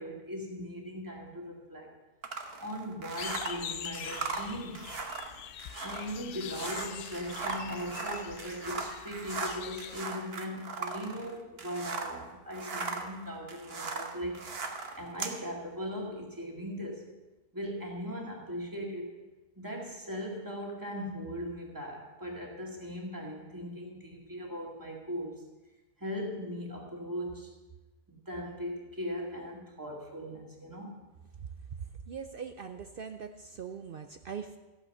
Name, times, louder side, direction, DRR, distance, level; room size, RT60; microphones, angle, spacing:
voice 1, 0.0-2.0 2.6-4.9 5.8-17.0 17.5-19.1 19.6-25.4 26.0-27.5 28.1-31.1, equal, 15° right, -1 dB, 2.1 m, -39 dB
sound 1, 2.2-12.2 12.5-15.4, right 4 dB, 45° right, 1.2 m, -38 dB
sound 2, 3.2-10.1, left 9 dB, 75° left, 0.5 m, -44 dB
voice 2, 32.1-34.6, right 6 dB, 65° right, 8 dB, 0.5 m, -41 dB
14.5 x 8.9 x 5.4 m, 1.1 s
omnidirectional pair, 1.5 m